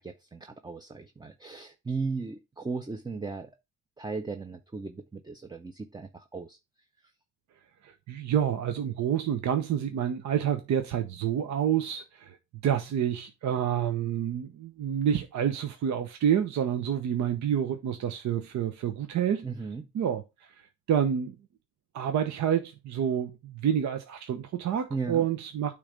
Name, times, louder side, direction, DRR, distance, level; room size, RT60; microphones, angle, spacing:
voice 1, 0.0-3.5 4.0-6.6 19.4-19.9 24.9-25.3, right 4 dB, 15° right, 0.6 m, -36 dB
voice 2, 7.8-12.4 12.6-19.4 19.9-20.2 20.9-21.4 21.9-25.8, right 9 dB, 70° right, 0.9 m, -28 dB
8.5 x 3.3 x 5.1 m
cardioid pair, 90°, 30 cm